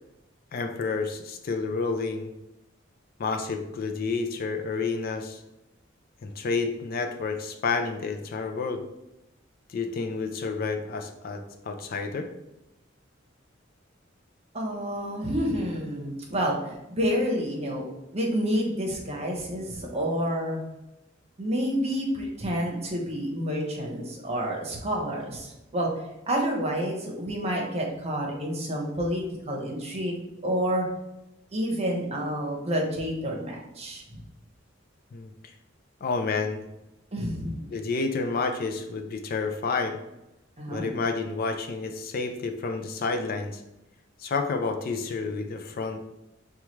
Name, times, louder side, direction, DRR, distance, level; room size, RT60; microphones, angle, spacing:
voice 1, 0.5-2.3 3.2-5.4 6.2-8.8 9.7-12.3 35.1-35.5 36.0-36.7 37.7-40.0 40.7-43.6 44.2-46.0, left 4 dB, 50° left, 5 dB, 0.4 m, -30 dB
voice 2, 14.5-17.8 18.1-20.6 21.4-25.9 26.3-30.9 31.5-34.2 37.1-37.7 40.6-40.9, equal, 35° right, -1 dB, 0.9 m, -29 dB
5.6 x 2.3 x 3.1 m, 0.92 s
head